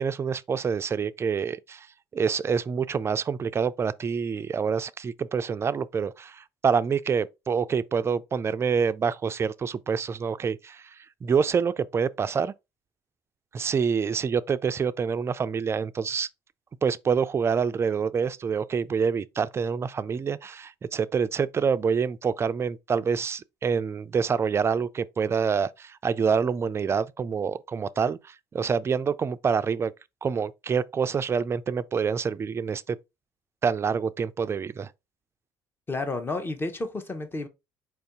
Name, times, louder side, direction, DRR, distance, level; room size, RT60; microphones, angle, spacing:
voice 1, 0.0-1.9 2.1-10.9 11.2-12.5 13.5-16.3 16.8-29.9 30.2-33.0 33.6-34.9, right 6 dB, 30° right, 0.4 m, -26 dB
voice 2, 35.9-37.5, left 2 dB, 25° left, 0.9 m, -31 dB
4.5 x 2.7 x 3.6 m
supercardioid pair, 75°, 9 cm